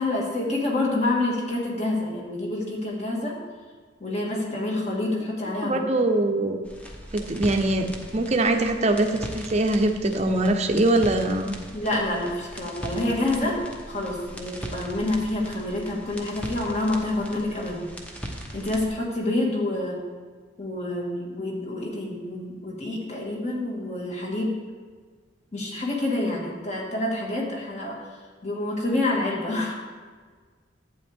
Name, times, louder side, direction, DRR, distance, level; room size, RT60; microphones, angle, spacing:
voice 1, 0.0-3.4 4.0-5.9 11.7-13.6 13.9-17.9 18.5-20.0 20.6-24.5 25.5-28.0 28.4-29.7, left 2 dB, 35° left, -2 dB, 1.9 m, -27 dB
voice 2, 5.6-6.6 7.1-11.6, right 2 dB, 35° right, 5 dB, 0.7 m, -23 dB
sound 1, 6.6-18.9, equal, 5° left, 0.9 m, -39 dB
11.5 x 8.5 x 3.6 m, 1.5 s
head